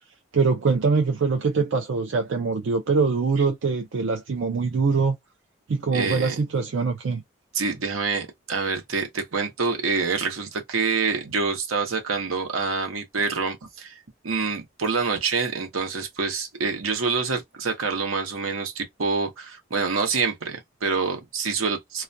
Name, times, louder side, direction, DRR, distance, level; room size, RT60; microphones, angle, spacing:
voice 1, 0.3-5.2 5.7-7.2, right 4 dB, 70° right, 0.4 m, -23 dB
voice 2, 5.9-6.4 7.5-14.0 14.2-22.0, right 4 dB, 90° right, 0.8 m, -26 dB
2.4 x 2.1 x 2.5 m
head